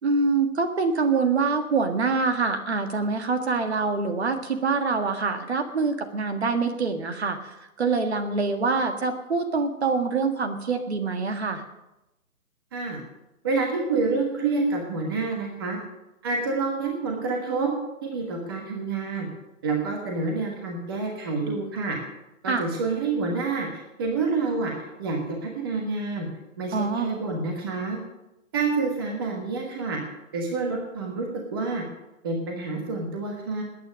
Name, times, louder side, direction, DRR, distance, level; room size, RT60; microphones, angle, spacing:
voice 1, 0.0-11.6 22.5-22.7 26.7-27.1, right 4 dB, 50° right, 6 dB, 1.8 m, -25 dB
voice 2, 13.4-15.8 16.2-17.7 18.0-19.3 19.6-22.0 22.4-24.7 25.0-26.3 26.6-28.0 28.5-30.0 30.3-31.8 32.2-33.6, right 4 dB, 15° right, 1 dB, 1.3 m, -28 dB
20.0 x 9.3 x 6.4 m, 0.94 s
hypercardioid pair, 175°, 43 cm